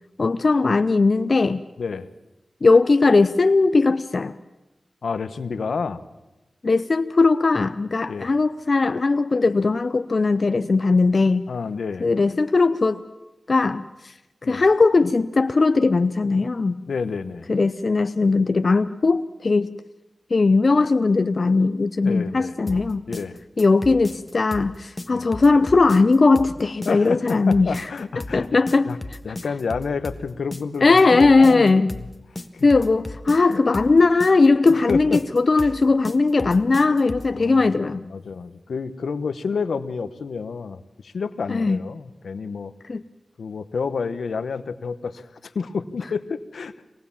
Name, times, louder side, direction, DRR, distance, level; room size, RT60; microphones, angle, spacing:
voice 1, 0.2-1.6 2.6-4.4 6.6-11.5 12.0-13.0 13.5-14.1 14.5-16.8 17.5-19.7 20.3-23.0 23.6-27.9 28.3-28.9 30.8-32.0 32.6-38.0 41.5-41.8 42.9-43.0, left 3 dB, 55° left, 10 dB, 0.7 m, -19 dB
voice 2, 5.0-6.0 8.1-8.3 11.5-12.1 14.4-14.6 16.9-17.5 22.0-22.5 23.1-23.4 25.1-25.3 26.9-28.4 28.8-29.0 29.2-31.9 32.5-32.7 34.9-35.2 37.3-37.8 38.1-42.7 43.4-46.8, left 5 dB, 85° left, 12 dB, 1.0 m, -29 dB
sound 1, 22.7-37.4, left 2 dB, 35° left, 1.5 m, -36 dB
24.5 x 19.0 x 7.2 m, 0.99 s
cardioid pair, 45°, 0 cm